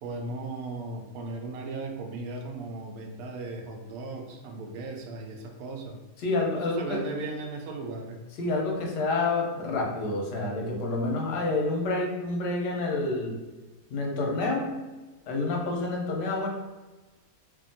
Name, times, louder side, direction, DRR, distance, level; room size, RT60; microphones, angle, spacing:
voice 1, 0.0-6.0 6.5-8.2, right 3 dB, 70° right, 2 dB, 0.9 m, -37 dB
voice 2, 6.2-7.1 8.4-13.4 13.9-14.8 15.3-16.5, left 2 dB, 90° left, 0 dB, 1.2 m, -28 dB
2.7 x 2.6 x 2.6 m, 1.2 s
omnidirectional pair, 1.8 m